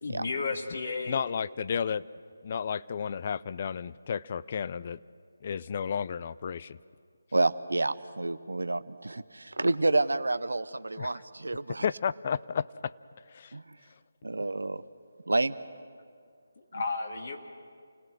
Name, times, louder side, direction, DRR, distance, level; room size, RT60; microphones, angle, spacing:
voice 1, 0.0-1.2 16.6-17.4, left 4 dB, 60° left, 3 dB, 2.2 m, -33 dB
voice 2, 1.1-2.0 2.4-5.0 5.4-6.8 11.0-11.1 11.8-12.9 13.3-13.5, left 7 dB, 40° left, 18 dB, 0.5 m, -32 dB
voice 3, 7.3-11.8 13.5-13.6 14.2-14.8 15.3-15.6, right 2 dB, 80° right, 14 dB, 0.8 m, -29 dB
28.5 x 18.5 x 6.4 m, 2.2 s
figure-of-eight pair, 155°, 0 cm